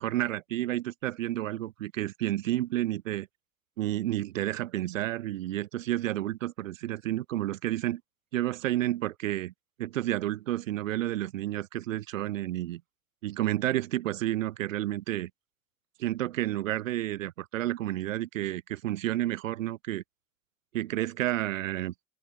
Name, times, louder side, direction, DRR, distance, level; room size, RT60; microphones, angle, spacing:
voice 1, 0.0-3.3 3.8-8.0 8.3-9.5 9.8-12.8 13.2-15.3 16.0-20.0 20.7-21.9, right 14 dB, 85° right, 5.3 m, -30 dB
open air
hypercardioid pair, 55°, 38 cm